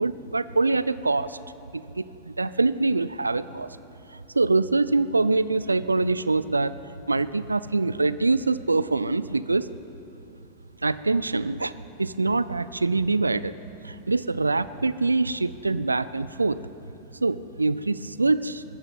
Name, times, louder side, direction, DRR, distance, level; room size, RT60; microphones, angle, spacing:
voice 1, 0.0-1.4 1.7-3.7 4.1-6.8 7.1-9.7 10.8-11.7 12.0-13.5 13.8-16.6 17.2-18.6, right 3 dB, 80° right, 16 dB, 0.4 m, -24 dB
20.0 x 14.5 x 4.2 m, 2.7 s
figure-of-eight pair, 90°, 0 cm